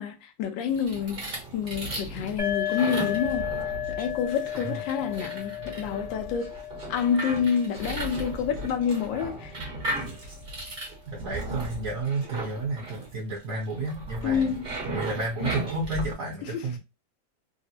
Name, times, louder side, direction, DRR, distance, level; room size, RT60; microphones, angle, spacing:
voice 1, 0.0-3.5 3.9-6.6 6.9-9.5 14.2-14.7 16.4-16.8, left 7 dB, 85° left, 1.3 m, -28 dB
sound 1, 0.7-16.1, right 2 dB, 35° right, 0.9 m, -36 dB
sound 2, 2.4-9.9, left 11 dB, 35° left, 0.8 m, -35 dB
voice 2, 11.1-14.5 14.8-16.8, right 2 dB, 50° right, 1.4 m, -32 dB
3.4 x 2.0 x 2.9 m
omnidirectional pair, 2.0 m